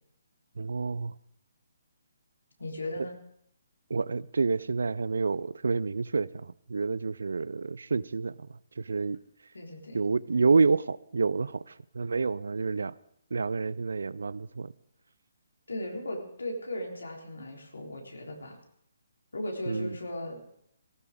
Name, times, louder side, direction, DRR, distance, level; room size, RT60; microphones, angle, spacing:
voice 1, 0.6-1.1 3.9-9.2 9.9-13.0 13.3-14.7 19.7-20.0, right 4 dB, 70° right, 21 dB, 0.4 m, -28 dB
voice 2, 2.6-3.1 9.5-10.0 15.7-18.6 19.3-20.4, left 1 dB, 80° left, 1 dB, 3.5 m, -37 dB
18.0 x 16.0 x 3.7 m, 0.71 s
figure-of-eight pair, 140°, 0 cm